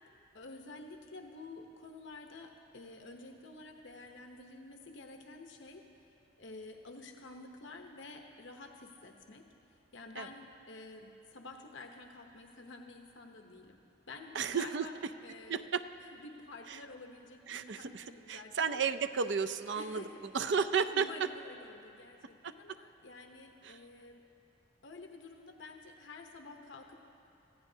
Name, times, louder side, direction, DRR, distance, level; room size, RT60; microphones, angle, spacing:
voice 1, 0.3-5.8 6.4-9.4 9.9-13.8 14.1-15.7 16.1-18.9 19.7-20.2 20.9-24.2 24.8-27.1, left 3 dB, 75° left, 3 dB, 0.9 m, -50 dB
voice 2, 14.3-14.9 15.5-15.8 16.7-16.8 17.5-20.0 20.3-21.1 22.4-22.5 23.6-23.8, right 6 dB, 65° right, 10 dB, 0.5 m, -33 dB
24.0 x 15.0 x 2.8 m, 2.7 s
head